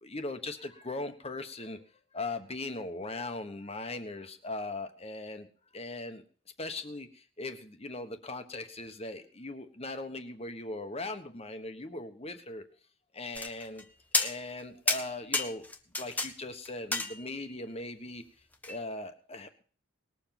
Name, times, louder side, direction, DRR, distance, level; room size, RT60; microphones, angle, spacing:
voice 1, 0.0-1.8 2.1-5.5 5.7-6.2 6.6-12.6 13.1-13.8 14.1-15.7 16.0-18.2 18.7-19.6, left 2 dB, 30° left, 8 dB, 1.3 m, -39 dB
sound 1, 13.4-13.8 14.1-14.6 14.9-16.3 16.7-17.5 18.6-18.8, left 2 dB, 10° left, 0.9 m, -31 dB
19.5 x 7.2 x 5.9 m, 0.44 s
head